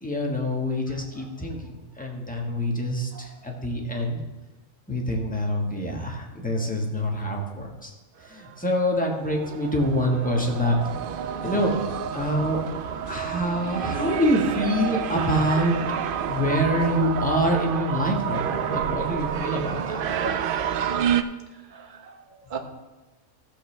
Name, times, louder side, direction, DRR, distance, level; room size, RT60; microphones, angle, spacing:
voice 1, 0.0-4.2 4.9-7.9 8.3-10.8 11.4-11.8 12.1-12.6 13.0-15.8 16.3-20.0, equal, 5° left, 0 dB, 1.3 m, -26 dB
voice 2, 0.9-1.3 3.1-3.3 11.5-11.8 21.7-22.2 22.5-22.6, right 6 dB, 40° right, 3 dB, 1.1 m, -39 dB
sound 1, 8.5-8.6 9.1-21.2, right 8 dB, 90° right, 0.4 m, -29 dB
15.0 x 7.2 x 3.3 m, 1.1 s
omnidirectional pair, 1.5 m